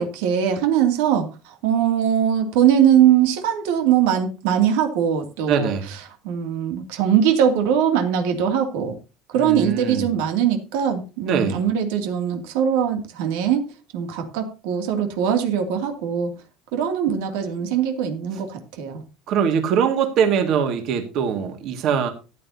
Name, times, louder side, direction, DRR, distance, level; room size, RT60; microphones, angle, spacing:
voice 1, 0.0-5.7 6.2-8.9 9.3-13.6 13.9-16.3 16.7-19.0, right 9 dB, 90° right, 5 dB, 2.4 m, -21 dB
voice 2, 5.5-5.9 9.3-10.1 11.3-11.6 19.3-22.1, right 7 dB, 45° right, 6 dB, 1.9 m, -22 dB
14.0 x 10.0 x 2.8 m, 0.31 s
cardioid pair, 165°, 0 cm